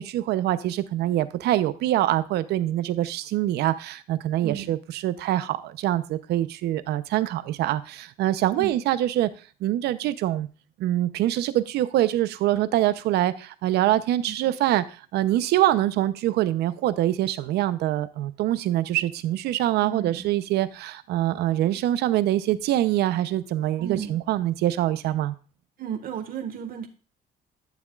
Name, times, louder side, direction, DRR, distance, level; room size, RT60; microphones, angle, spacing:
voice 1, 0.0-9.3 9.6-10.5 10.8-25.3, right 13 dB, 75° right, 14 dB, 0.7 m, -24 dB
voice 2, 19.8-20.3 23.8-24.2 25.8-26.9, right 8 dB, 60° right, 7 dB, 1.7 m, -33 dB
11.5 x 7.1 x 2.4 m, 0.36 s
cardioid pair, 110°, 17 cm